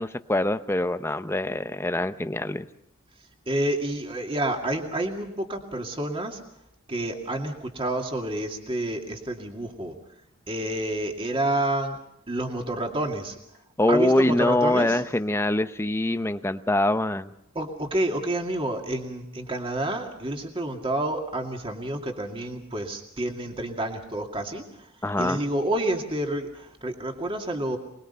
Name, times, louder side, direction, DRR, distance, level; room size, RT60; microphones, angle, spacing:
voice 1, 0.0-2.7 13.8-17.3 25.0-25.4, left 1 dB, 10° left, 11 dB, 0.7 m, -24 dB
voice 2, 3.5-6.4 6.9-9.9 10.5-12.0 12.3-13.4 13.9-15.0 17.5-27.8, right 1 dB, 25° right, 3 dB, 2.4 m, -29 dB
25.5 x 20.5 x 5.6 m, 0.81 s
head